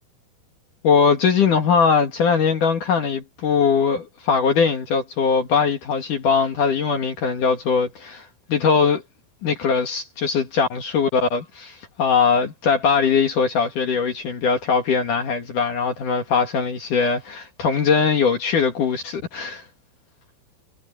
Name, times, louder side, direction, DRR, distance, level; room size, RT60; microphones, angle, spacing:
voice 1, 0.8-9.0 9.4-19.6, left 5 dB, 55° left, 2.5 m, -21 dB
omnidirectional pair, 5.8 m